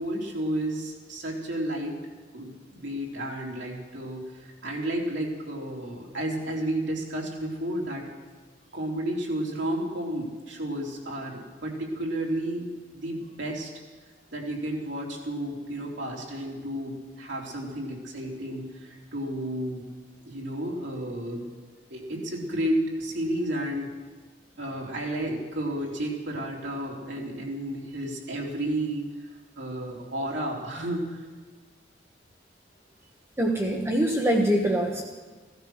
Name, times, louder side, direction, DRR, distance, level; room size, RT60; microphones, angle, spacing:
voice 1, 0.0-2.0 2.3-8.1 8.7-13.7 14.3-19.9 20.3-21.5 21.9-23.9 24.6-29.1 29.6-31.3, right 1 dB, 90° right, -2 dB, 3.7 m, -32 dB
voice 2, 33.4-35.0, right 1 dB, 15° right, 0 dB, 1.4 m, -24 dB
17.0 x 13.5 x 6.4 m, 1.4 s
head